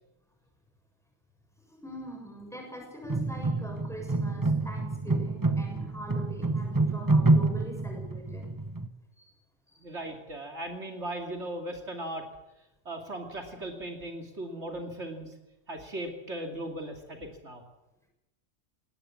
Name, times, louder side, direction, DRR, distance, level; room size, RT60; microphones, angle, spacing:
voice 1, 1.7-8.5 9.2-9.3 9.7-9.8, equal, ahead, 1 dB, 7.0 m, -43 dB
sound 1, 3.1-8.9, right 2 dB, 20° right, 1.1 m, -27 dB
voice 2, 9.8-12.3 12.8-15.3 15.7-17.6, right 1 dB, 65° right, 3 dB, 2.9 m, -38 dB
20.0 x 18.0 x 8.4 m, 0.94 s
omnidirectional pair, 1.2 m